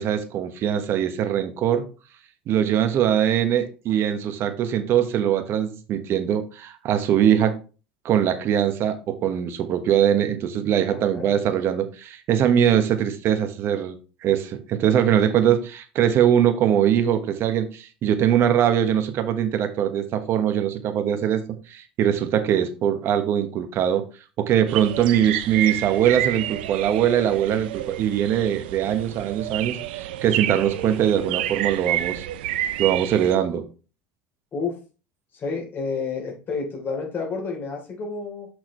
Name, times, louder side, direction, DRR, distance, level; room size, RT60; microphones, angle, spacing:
voice 1, 0.0-1.8 2.5-7.6 8.0-24.0 24.4-32.3 32.8-33.6, right 9 dB, 50° right, 1.2 m, -22 dB
voice 2, 10.8-11.3 34.5-34.8 35.3-38.5, left 4 dB, 40° left, 3.4 m, -30 dB
sound 1, 24.7-33.4, right 13 dB, 80° right, 0.5 m, -29 dB
6.3 x 6.1 x 3.2 m
hypercardioid pair, 90°, 5 cm